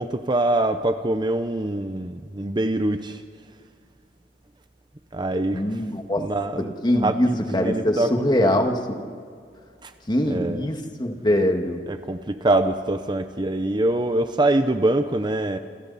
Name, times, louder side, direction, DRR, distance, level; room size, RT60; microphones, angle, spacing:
voice 1, 0.0-3.2 5.1-5.6 6.2-8.6 9.8-9.9 10.3-10.7 11.9-15.6, right 2 dB, 25° right, 9 dB, 0.8 m, -24 dB
voice 2, 5.5-6.3 6.8-9.0 10.1-11.8, left 1 dB, 25° left, 4 dB, 1.9 m, -23 dB
29.0 x 27.5 x 4.2 m, 2.2 s
head